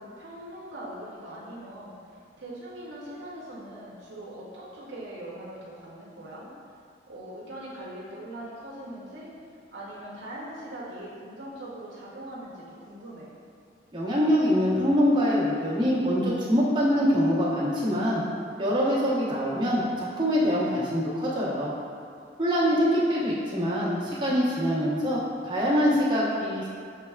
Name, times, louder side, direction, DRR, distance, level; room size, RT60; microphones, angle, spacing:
voice 1, 0.0-6.5 7.1-9.3 9.7-13.3 22.6-23.2, right 1 dB, 75° right, -6 dB, 0.7 m, -41 dB
voice 2, 13.9-18.2 18.6-21.7 22.4-26.7, equal, 25° right, -8 dB, 0.9 m, -24 dB
6.6 x 3.2 x 2.3 m, 2.3 s
head